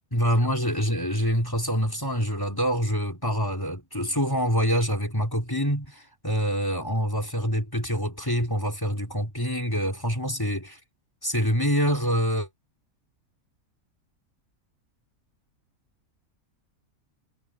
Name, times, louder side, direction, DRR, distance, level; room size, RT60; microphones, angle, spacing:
voice 1, 0.1-10.8 11.2-12.5, equal, 15° left, 3.9 m, -26 dB
omnidirectional pair, 1.5 m